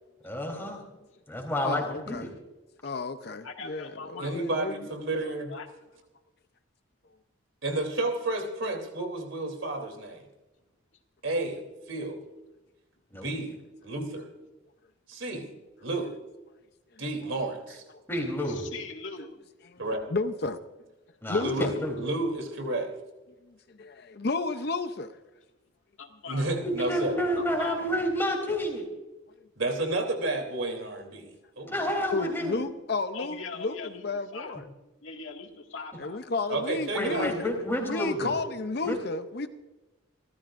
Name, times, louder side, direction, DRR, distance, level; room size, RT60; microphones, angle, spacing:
voice 1, 0.2-0.8 1.3-2.3 13.1-13.3 18.1-18.6 21.2-22.0 26.6-28.8 31.7-32.6 36.9-38.3 38.8-39.0, equal, 10° left, 1 dB, 3.5 m, -30 dB
voice 2, 1.6-2.3 2.8-4.8 19.7-19.8 20.1-20.6 21.3-21.7 23.4-25.1 32.1-33.8 34.0-34.6 36.0-37.5 37.9-39.5, left 3 dB, 50° left, 9 dB, 0.6 m, -32 dB
voice 3, 3.4-4.3 5.2-5.7 18.5-19.3 26.0-26.6 27.4-27.8 33.1-34.1 34.3-34.5 35.0-36.5, left 4 dB, 70° left, 2 dB, 2.0 m, -41 dB
voice 4, 4.2-5.5 7.6-10.2 11.2-11.6 11.9-12.2 13.2-13.6 13.8-14.3 15.1-15.5 15.8-16.1 17.0-17.8 19.8-20.0 21.3-21.7 21.9-22.9 26.3-27.2 29.6-31.9 36.5-37.3, right 2 dB, 75° right, 3 dB, 3.2 m, -31 dB
29.0 x 14.0 x 2.5 m, 1.1 s
head